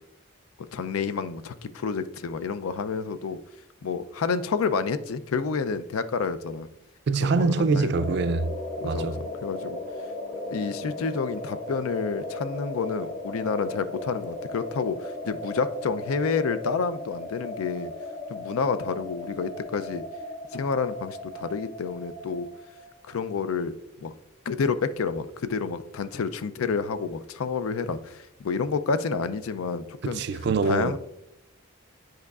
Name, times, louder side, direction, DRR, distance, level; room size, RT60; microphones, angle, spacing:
voice 1, 0.7-3.4 3.8-6.7 7.2-8.1 8.8-9.8 10.5-17.9 18.3-20.0 20.5-22.5 23.1-23.7 24.0-24.1 24.5-30.2 30.6-31.0, left 5 dB, 90° left, 0.4 m, -29 dB
voice 2, 7.1-8.5 8.8-9.2 30.0-31.0, right 4 dB, 50° right, 0.3 m, -24 dB
sound 1, 7.9-23.3, left 2 dB, 60° left, 0.9 m, -37 dB
9.1 x 4.8 x 2.4 m
head